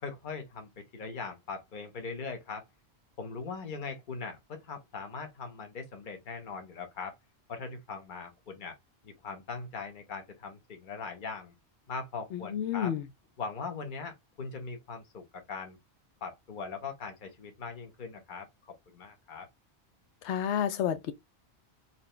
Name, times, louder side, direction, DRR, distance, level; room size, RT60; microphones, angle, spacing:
voice 1, 0.0-2.7 3.2-7.2 7.5-8.7 9.0-11.5 11.9-12.9 13.4-15.8 16.2-18.5 18.9-19.5, left 4 dB, 45° left, 1.1 m, -40 dB
voice 2, 12.3-13.1 20.2-21.1, left 9 dB, 75° left, 0.9 m, -30 dB
4.1 x 2.8 x 3.2 m
omnidirectional pair, 1.2 m